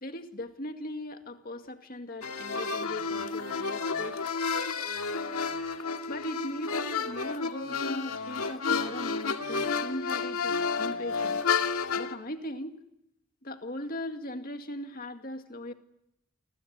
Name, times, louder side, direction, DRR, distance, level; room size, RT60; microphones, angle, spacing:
voice 1, 0.0-4.2 6.1-11.4 12.0-12.7 13.4-15.7, left 1 dB, 40° left, 6 dB, 2.2 m, -39 dB
sound 1, 2.2-12.2, left 5 dB, 85° left, 2.1 m, -31 dB
29.0 x 21.0 x 9.5 m, 0.83 s
head